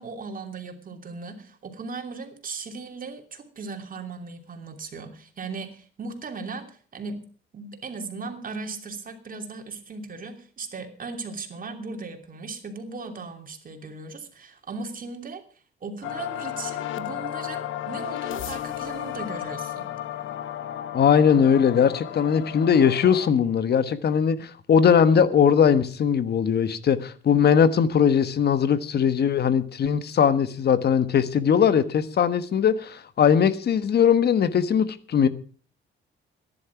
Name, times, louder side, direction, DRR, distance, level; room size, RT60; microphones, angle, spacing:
voice 1, 0.0-7.2 7.5-15.4 15.8-19.9, right 4 dB, 45° right, 3.0 m, -37 dB
sound 1, 16.0-23.3, left 12 dB, 80° left, 1.1 m, -33 dB
voice 2, 20.9-35.3, left 7 dB, 55° left, 1.3 m, -20 dB
13.5 x 11.0 x 5.9 m
cardioid pair, 90°, 20 cm